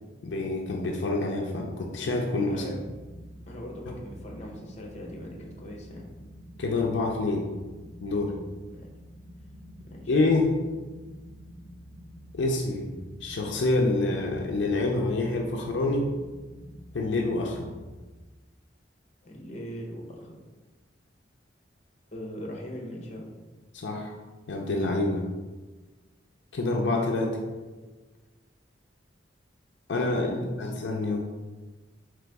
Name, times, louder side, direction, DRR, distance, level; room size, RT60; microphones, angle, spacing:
voice 1, 0.2-2.6 6.6-7.5 8.0-8.3 10.1-10.5 12.3-12.9 13.2-16.1 16.9-17.7 23.7-24.1 24.5-25.2 26.5-27.4 29.9-31.2, left 2 dB, 75° left, 1 dB, 0.5 m, -27 dB
voice 2, 2.5-2.9 3.5-6.1 8.7-8.9 9.8-10.1 19.2-20.4 22.1-23.3 30.1-30.7, equal, 35° left, 0 dB, 0.7 m, -40 dB
sound 1, 2.5-18.0, equal, 80° right, 1.0 m, -48 dB
3.9 x 3.3 x 3.4 m, 1.3 s
head